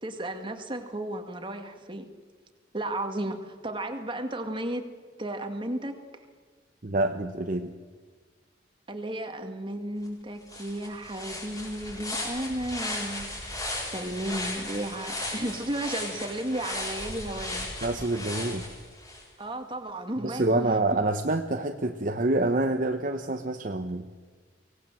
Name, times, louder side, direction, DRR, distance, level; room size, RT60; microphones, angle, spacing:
voice 1, 0.0-2.1 2.7-4.9 5.2-6.2 8.9-13.3 13.8-17.7 19.4-20.8, right 1 dB, 25° right, 6 dB, 2.1 m, -34 dB
voice 2, 6.8-7.7 17.8-18.7 20.2-24.1, right 2 dB, 45° right, 6 dB, 1.0 m, -27 dB
sound 1, 10.1-10.2 10.5-19.2, left 1 dB, 20° left, 6.7 m, -36 dB
24.0 x 18.5 x 7.7 m, 1.5 s
head